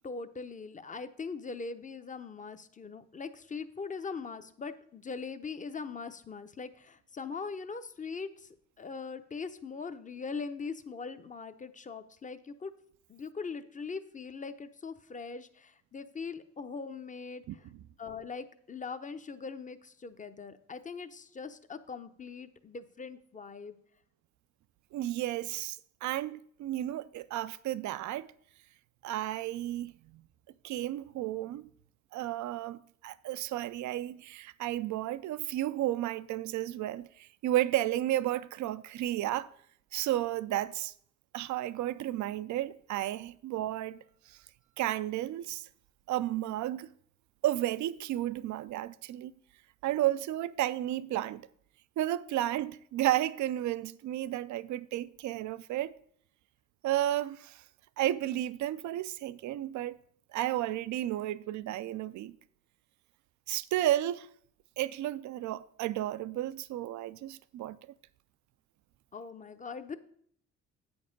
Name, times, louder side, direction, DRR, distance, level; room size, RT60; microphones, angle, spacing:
voice 1, 0.0-8.5 8.8-12.7 13.1-17.7 18.0-23.7 69.1-70.0, left 5 dB, 25° left, 0.7 m, -41 dB
voice 2, 24.9-28.3 29.0-30.2 30.6-31.7 32.1-39.5 39.9-40.9 41.3-44.0 44.3-44.4 44.8-45.7 46.1-46.9 47.4-49.3 49.8-51.5 52.0-55.9 56.8-57.6 58.0-60.0 60.3-62.4 63.5-64.3 64.8-67.8, right 14 dB, 70° right, 0.4 m, -32 dB
8.4 x 5.3 x 5.1 m
supercardioid pair, 65°, 31 cm